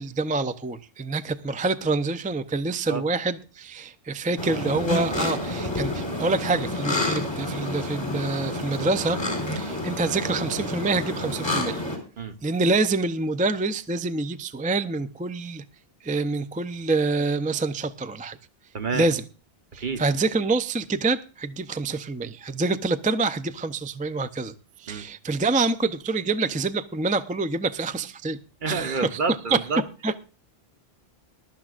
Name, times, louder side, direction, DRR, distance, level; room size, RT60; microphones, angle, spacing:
voice 1, 0.0-9.2 9.5-11.8 12.4-15.6 16.0-18.4 18.9-19.2 19.7-28.4 28.6-29.2 29.5-29.6 30.0-30.2, right 3 dB, 10° right, 0.4 m, -26 dB
sound 1, 4.4-12.0, left 2 dB, 25° left, 4.3 m, -29 dB
voice 2, 18.7-19.1 19.8-20.0 24.9-25.1 28.6-29.8, right 4 dB, 55° right, 1.1 m, -28 dB
21.0 x 12.0 x 2.5 m
omnidirectional pair, 1.0 m